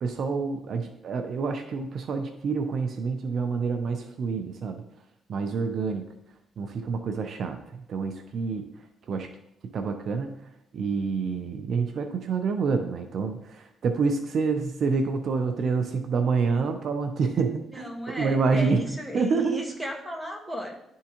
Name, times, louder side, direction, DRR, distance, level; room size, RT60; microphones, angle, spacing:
voice 1, 0.0-4.8 5.3-6.0 6.6-8.7 9.1-9.3 9.7-10.4 10.7-17.9 18.2-18.8 19.1-19.6, right 4 dB, 60° right, 6 dB, 0.6 m, -27 dB
voice 2, 17.7-20.8, equal, 5° right, 0 dB, 1.5 m, -34 dB
11.0 x 3.6 x 3.0 m, 0.79 s
cardioid pair, 90°, 0 cm